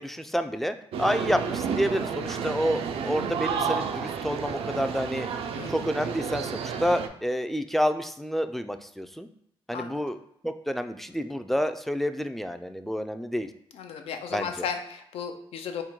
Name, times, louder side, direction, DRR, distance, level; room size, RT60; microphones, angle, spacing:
voice 1, 0.0-5.3 5.7-9.3 9.7-10.2 10.4-13.5 14.3-14.7, equal, ahead, 8 dB, 0.3 m, -29 dB
sound 1, 0.9-7.1, right 6 dB, 80° right, 0.4 m, -31 dB
voice 2, 9.7-10.0 13.7-15.8, left 6 dB, 85° left, 6 dB, 0.5 m, -35 dB
3.7 x 2.1 x 4.4 m, 0.72 s
cardioid pair, 75°, 10 cm